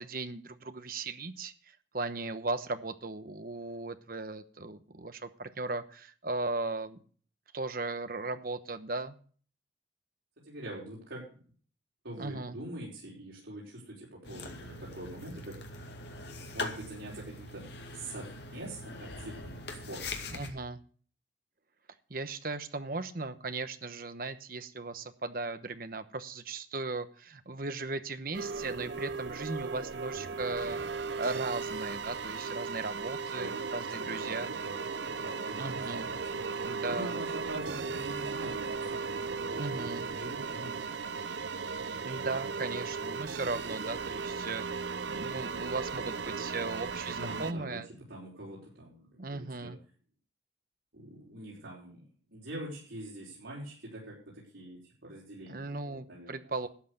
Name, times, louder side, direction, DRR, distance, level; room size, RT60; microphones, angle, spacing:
voice 1, 0.0-7.0 7.5-9.2 12.2-12.6 20.3-20.8 22.1-30.8 31.2-34.5 35.6-36.1 36.6-37.1 39.6-40.1 42.0-47.9 49.2-49.8 55.5-56.7, right 3 dB, 50° right, 11 dB, 1.0 m, -37 dB
voice 2, 10.4-11.3 12.0-15.6 16.5-17.7 17.9-20.2 33.4-33.5 34.1-36.4 36.9-41.0 47.1-47.8 48.1-49.7 50.9-52.0 52.3-56.5, right 1 dB, 85° right, -6 dB, 4.9 m, -44 dB
sound 1, 14.2-20.5, left 2 dB, 65° left, 2.2 m, -42 dB
sound 2, 28.3-47.5, right 5 dB, 70° right, 0.7 m, -36 dB
13.0 x 8.1 x 6.6 m, 0.44 s
head